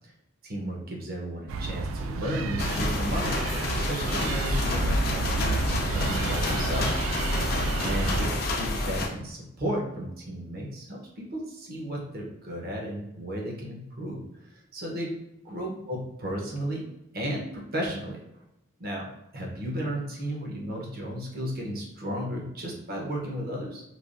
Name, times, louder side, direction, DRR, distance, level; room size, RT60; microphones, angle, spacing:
voice 1, 0.4-3.4 3.9-7.0 7.3-7.5 7.8-14.2 14.7-15.1 15.4-16.8 17.1-18.2 18.8-19.1 19.3-23.8, equal, 50° right, -1 dB, 0.8 m, -34 dB
sound 1, 1.5-8.3, right 3 dB, 90° right, 0.3 m, -31 dB
sound 2, 2.6-9.1, left 2 dB, 50° left, 0.4 m, -29 dB
3.2 x 2.3 x 2.5 m, 0.88 s
head